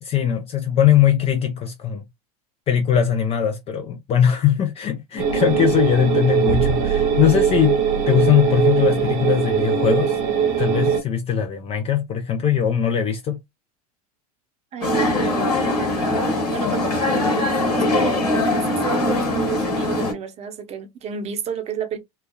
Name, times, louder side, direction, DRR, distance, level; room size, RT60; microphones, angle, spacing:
voice 1, 0.0-2.0 2.7-10.2 10.6-13.4, left 9 dB, 30° left, 0.4 m, -20 dB
sound 1, 5.2-11.0, right 7 dB, 60° right, 1.0 m, -20 dB
voice 2, 14.7-22.0, right 8 dB, 35° right, 0.8 m, -31 dB
sound 2, 14.8-20.1, left 2 dB, 90° left, 1.2 m, -21 dB
3.0 x 2.3 x 2.2 m
hypercardioid pair, 85°, 20 cm